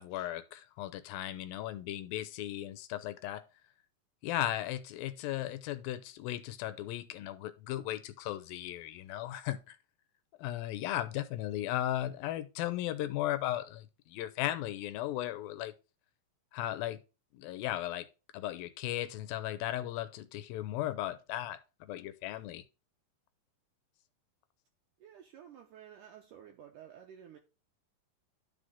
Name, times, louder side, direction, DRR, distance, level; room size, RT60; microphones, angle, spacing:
voice 1, 0.0-3.4 4.2-9.8 10.4-15.7 16.5-17.0 17.3-18.1 18.3-22.6, left 13 dB, 85° left, 2.5 m, -36 dB
voice 2, 25.0-27.4, right 9 dB, 75° right, 2.2 m, -52 dB
12.0 x 5.0 x 3.7 m
omnidirectional pair, 4.1 m